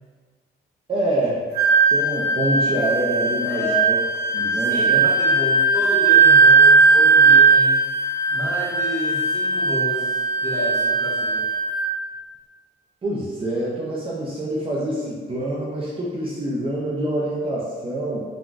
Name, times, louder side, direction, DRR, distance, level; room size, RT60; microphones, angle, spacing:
voice 1, 0.9-1.4 1.9-4.0 4.3-5.0 13.0-18.2, right 1 dB, 30° right, -6 dB, 0.5 m, -26 dB
Wind instrument woodwind instrument, 1.5-11.9, right 4 dB, 55° right, 0.9 m, -18 dB
voice 2, 3.5-3.8 4.5-7.8 8.3-11.4, left 1 dB, 15° left, -9 dB, 1.3 m, -30 dB
3.7 x 2.3 x 2.4 m, 1.5 s
cardioid pair, 90°, 20 cm